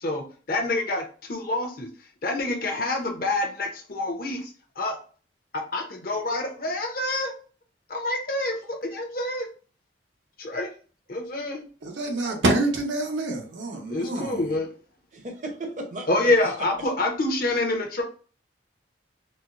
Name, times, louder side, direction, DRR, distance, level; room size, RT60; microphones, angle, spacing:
voice 1, 0.0-1.0 1.3-1.9 2.2-4.5 4.8-4.9 5.7-7.3 7.9-9.5 10.4-10.7 11.1-11.6 13.9-14.7 16.1-18.0, left 2 dB, 50° left, 0.7 m, -27 dB
voice 2, 11.8-14.4, right 2 dB, 85° right, 0.8 m, -26 dB
voice 3, 15.1-16.5, right 1 dB, 40° right, 0.7 m, -35 dB
4.2 x 2.0 x 2.4 m
head